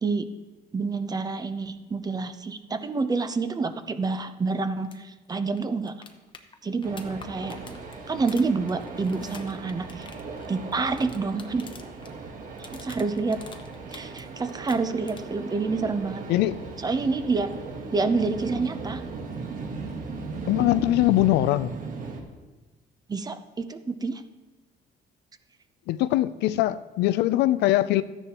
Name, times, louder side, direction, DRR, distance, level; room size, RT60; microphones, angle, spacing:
voice 1, 0.7-5.9 6.6-7.6 8.1-10.1 10.5-11.7 12.6-13.4 13.9-16.2 16.8-17.5 17.9-19.0 23.1-24.2, right 4 dB, 25° right, 10 dB, 0.7 m, -28 dB
sound 1, 4.8-5.0 5.2-5.3 5.6-12.1 12.4-14.2 14.5-15.4 17.5-17.6, left 5 dB, 30° left, 0.9 m, -48 dB
sound 2, 6.8-22.2, right 4 dB, 50° right, 1.5 m, -38 dB
voice 2, 20.5-21.7 25.9-28.0, left 15 dB, 80° left, 14 dB, 0.4 m, -22 dB
13.5 x 9.9 x 3.0 m, 1.2 s
cardioid pair, 110°, 17 cm